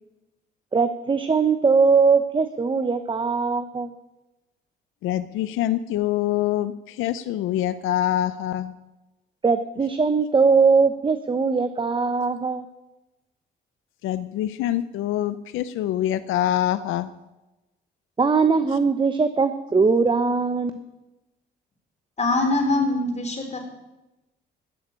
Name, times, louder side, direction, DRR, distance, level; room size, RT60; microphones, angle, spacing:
voice 1, 0.7-3.9 9.4-12.6 18.2-20.7, right 4 dB, 25° right, 9 dB, 0.9 m, -20 dB
voice 2, 5.0-8.7 14.0-17.1, left 12 dB, 90° left, 13 dB, 0.6 m, -25 dB
voice 3, 22.2-23.6, left 2 dB, 35° left, 2 dB, 4.4 m, -23 dB
13.0 x 8.1 x 9.0 m, 1.0 s
cardioid pair, 90°, 20 cm